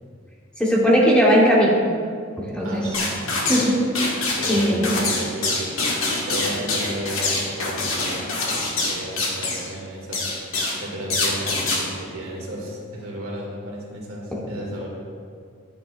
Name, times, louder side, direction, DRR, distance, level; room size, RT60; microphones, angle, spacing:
voice 1, 0.6-1.8 2.4-2.8 3.5-3.8 4.5-4.9, equal, 5° left, -5 dB, 1.3 m, -18 dB
voice 2, 2.6-3.5 4.3-8.3 8.9-14.9, right 1 dB, 80° right, -3 dB, 2.3 m, -33 dB
sound 1, 2.9-3.7 3.9-9.7 10.1-10.8 11.1-11.8, left 3 dB, 75° left, 1.7 m, -24 dB
10.5 x 9.2 x 2.5 m, 2.2 s
head